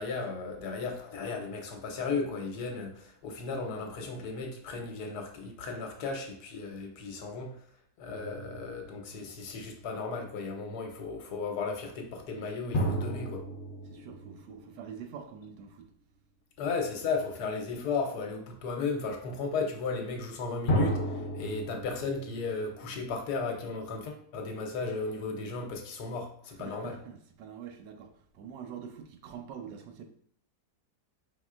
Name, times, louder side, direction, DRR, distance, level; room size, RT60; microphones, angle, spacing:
voice 1, 0.0-7.5 8.0-13.4 16.6-26.9, left 4 dB, 70° left, 1.3 m, -35 dB
sound 1, 8.1-9.8 12.7-15.4 20.7-23.7, equal, 50° left, 0.9 m, -34 dB
voice 2, 13.8-15.9 26.5-30.0, right 7 dB, 90° right, 1.3 m, -45 dB
4.8 x 3.6 x 2.4 m
omnidirectional pair, 1.8 m